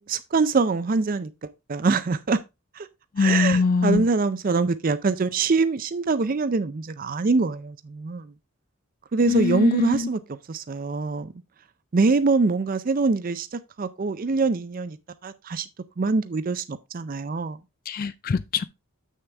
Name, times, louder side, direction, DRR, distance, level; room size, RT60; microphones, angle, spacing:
voice 1, 0.1-2.4 2.8-2.9 3.2-8.3 9.1-10.2 10.5-11.3 11.9-15.0 15.2-15.7 16.0-17.6, right 4 dB, 40° right, 0.4 m, -24 dB
voice 2, 3.1-4.1 9.3-10.1 17.9-18.6, left 4 dB, 40° left, 0.3 m, -23 dB
7.6 x 6.5 x 3.4 m
head